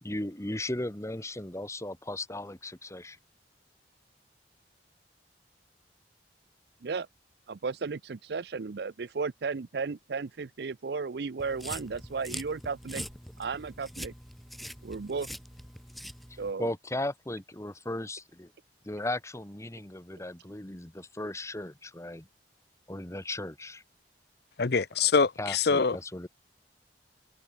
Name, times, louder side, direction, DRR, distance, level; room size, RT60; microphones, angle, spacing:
voice 1, 0.0-3.2 16.3-18.5 18.8-22.3 22.9-23.8 25.4-26.3, left 1 dB, 15° left, 1.5 m, -36 dB
voice 2, 7.5-13.0 13.4-14.1 14.8-15.3 16.4-16.7, right 4 dB, 65° right, 0.5 m, -34 dB
sound 1, 11.4-16.5, equal, ahead, 3.0 m, -43 dB
voice 3, 24.6-26.0, left 5 dB, 65° left, 0.8 m, -24 dB
head